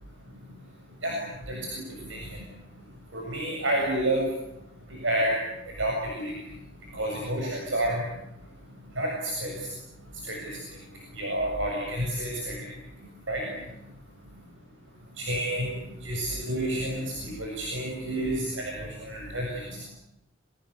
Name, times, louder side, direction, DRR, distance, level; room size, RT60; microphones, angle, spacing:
voice 1, 3.1-4.3 5.0-5.3 5.8-6.3 6.9-8.0 9.0-9.5 10.2-10.4 11.2-12.6 13.3-13.4 15.2-15.7 16.0-19.8, right 1 dB, 75° right, 0 dB, 7.3 m, -29 dB
28.5 x 24.5 x 8.2 m, 0.86 s
head